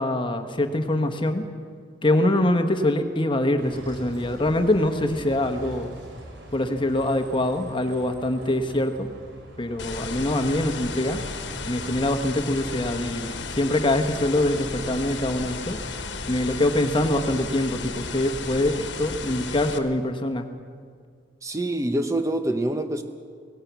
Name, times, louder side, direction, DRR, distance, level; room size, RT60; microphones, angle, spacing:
voice 1, 0.0-1.4 2.0-5.9 6.5-9.1 9.6-11.2 11.7-15.8 16.3-20.5, left 1 dB, 25° left, 7 dB, 1.2 m, -24 dB
Bus, 3.6-16.1, right 1 dB, 75° right, 4.4 m, -45 dB
sound 1, 9.8-19.8, left 4 dB, 70° left, 1.4 m, -34 dB
voice 2, 21.4-23.0, right 1 dB, 15° right, 7 dB, 0.8 m, -25 dB
18.0 x 18.0 x 8.2 m, 2.1 s
head